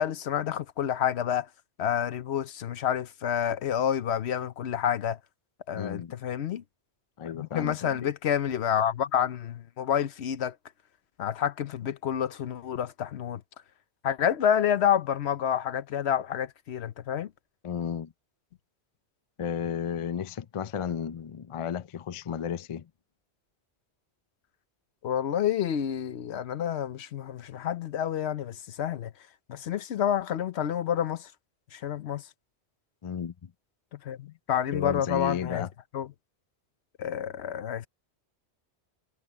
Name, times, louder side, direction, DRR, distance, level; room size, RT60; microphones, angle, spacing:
voice 1, 0.0-1.5 1.8-5.2 5.7-6.6 7.2-10.6 11.2-13.4 14.0-17.3 25.0-29.1 29.5-31.3 31.7-32.2 33.9-35.7 35.9-36.1 37.0-37.9, left 9 dB, 75° left, 1.0 m, -29 dB
voice 2, 5.7-6.2 7.2-8.1 17.6-18.1 19.4-22.9 33.0-33.5 34.7-35.7, left 8 dB, 40° left, 0.4 m, -33 dB
omnidirectional pair, 1.1 m